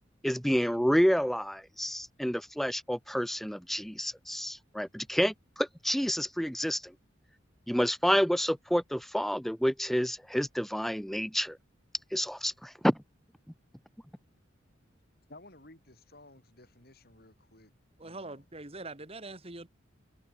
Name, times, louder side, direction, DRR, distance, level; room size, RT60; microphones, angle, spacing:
voice 1, 0.2-6.9 7.7-11.6 12.1-13.0, equal, ahead, 0.6 m, -29 dB
voice 2, 15.3-17.7 18.0-18.4, left 2 dB, 50° left, 5.5 m, -55 dB
voice 3, 18.0-19.7, right 2 dB, 30° right, 2.5 m, -43 dB
head